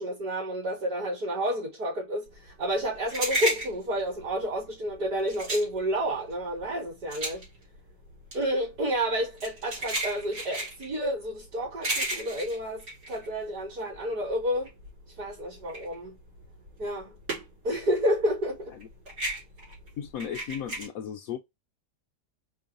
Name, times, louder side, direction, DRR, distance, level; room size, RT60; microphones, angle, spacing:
voice 1, 0.0-7.5 8.3-14.7 15.2-16.2 16.8-17.2 17.6-18.7, equal, 65° right, 3.5 m, -30 dB
sound 1, 2.4-14.0 14.3-17.8 18.0-20.9, right 1 dB, 85° right, 3.5 m, -34 dB
voice 2, 20.0-21.4, left 9 dB, 65° left, 0.9 m, -35 dB
5.3 x 2.3 x 2.5 m
omnidirectional pair, 1.8 m